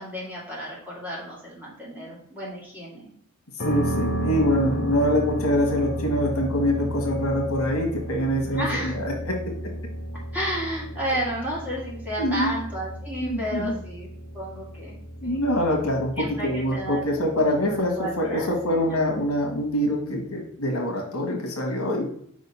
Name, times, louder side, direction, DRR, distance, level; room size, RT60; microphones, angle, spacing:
voice 1, 0.0-3.1 8.5-9.0 10.3-14.1 14.3-15.0 15.2-15.4 16.2-17.2 17.7-19.0, equal, 10° right, -6 dB, 2.4 m, -32 dB
voice 2, 3.6-9.3 12.2-12.5 13.2-13.8 15.2-22.1, equal, 85° left, 1 dB, 1.5 m, -25 dB
sound 1, 3.6-19.4, equal, 50° left, 0.9 m, -33 dB
5.1 x 3.7 x 5.5 m, 0.66 s
head